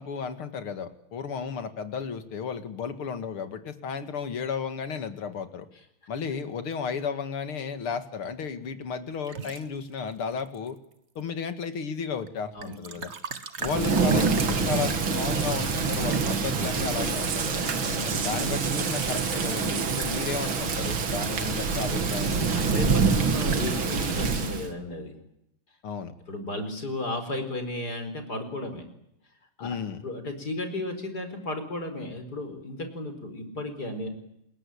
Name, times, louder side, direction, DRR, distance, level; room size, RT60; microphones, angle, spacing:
voice 1, 0.0-5.7 6.1-10.8 11.2-13.1 13.6-17.6 18.0-22.7 25.8-26.1 29.6-30.1, left 6 dB, 75° left, 10 dB, 2.9 m, -33 dB
sound 1, 9.3-9.7 10.4-10.9 12.3-12.4 12.6-15.0 16.1-16.4, right 5 dB, 35° right, 1.5 m, -38 dB
Thunder / Rain, 13.6-24.7, right 5 dB, 65° right, 3.0 m, -26 dB
sound 2, 16.8-21.6, right 7 dB, 90° right, 2.8 m, -38 dB
voice 2, 17.8-18.2 22.5-25.1 26.3-28.9 29.6-29.8 30.0-34.1, left 1 dB, 45° left, 8 dB, 5.1 m, -34 dB
28.5 x 21.5 x 8.6 m, 0.80 s
omnidirectional pair, 2.4 m